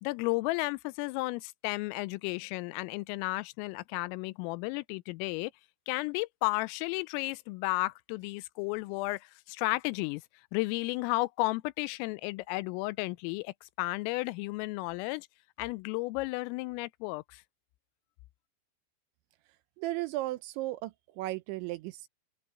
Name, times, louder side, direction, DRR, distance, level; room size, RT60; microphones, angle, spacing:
voice 1, 0.0-5.5 5.9-10.2 10.5-15.3 15.6-17.4, left 23 dB, 90° left, 3.2 m, -33 dB
voice 2, 19.8-22.1, right 17 dB, 80° right, 2.8 m, -35 dB
omnidirectional pair, 5.8 m